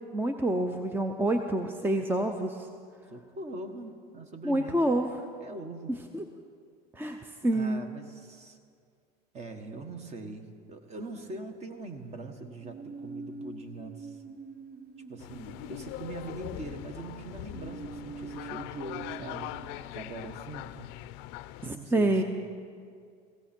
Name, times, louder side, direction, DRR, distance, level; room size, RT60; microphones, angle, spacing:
voice 1, 0.1-2.7 4.4-5.1 6.1-6.2 6.9-7.2 7.4-7.8 21.6-22.2, right 1 dB, 10° right, 6 dB, 0.7 m, -27 dB
voice 2, 3.1-5.1 5.4-5.9 7.5-8.6 9.3-14.2 15.1-19.5 19.9-20.9 21.7-22.2, right 2 dB, 30° right, 7 dB, 1.5 m, -42 dB
sound 1, 10.9-12.0 12.6-16.6 17.5-19.9, right 4 dB, 45° right, 1.3 m, -45 dB
sound 2, 15.2-21.7, left 16 dB, 65° left, 0.5 m, -41 dB
17.5 x 16.0 x 4.5 m, 2.2 s
supercardioid pair, 115°, 21 cm